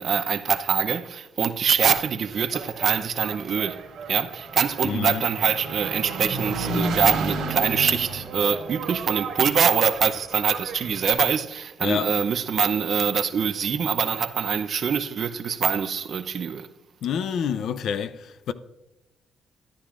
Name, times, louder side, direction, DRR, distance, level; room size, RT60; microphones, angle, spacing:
voice 1, 0.0-16.7, right 7 dB, 55° right, 0.7 m, -24 dB
Engine, 2.3-11.1, right 3 dB, 90° right, 2.2 m, -33 dB
voice 2, 4.8-5.2 11.8-12.1 17.0-18.5, left 8 dB, 70° left, 0.6 m, -28 dB
13.0 x 10.0 x 2.5 m
cardioid pair, 90°, 0 cm